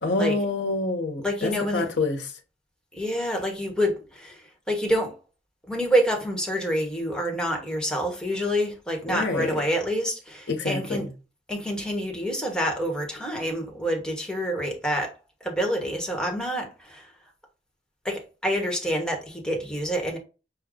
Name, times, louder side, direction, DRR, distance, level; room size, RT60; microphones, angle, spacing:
voice 1, 0.0-2.3 9.1-9.6 10.5-11.1, left 3 dB, 75° left, 1.0 m, -27 dB
voice 2, 1.2-1.9 2.9-5.2 5.7-11.1 11.5-15.1 15.4-17.1 18.0-20.2, equal, 5° left, 1.2 m, -27 dB
6.3 x 2.3 x 3.7 m
head